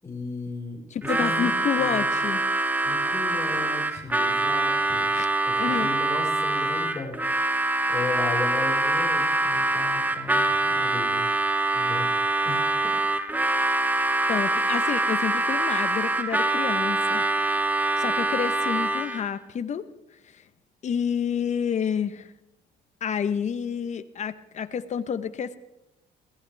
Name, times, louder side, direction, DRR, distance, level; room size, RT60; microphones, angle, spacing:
voice 1, 0.0-2.1 2.8-5.1 5.4-11.2 11.7-12.1 12.4-12.9, left 3 dB, 15° left, -3 dB, 4.7 m, -36 dB
voice 2, 0.9-2.5 5.1-5.3 5.6-5.9 14.3-17.2 17.5-17.7 18.0-19.9 20.3-20.4 20.8-22.3 23.0-25.6, left 7 dB, 45° left, 12 dB, 1.0 m, -29 dB
Harmonica, 1.0-19.3, right 2 dB, 10° right, 0.9 m, -24 dB
21.5 x 17.5 x 3.5 m, 0.90 s
cardioid pair, 110°, 17 cm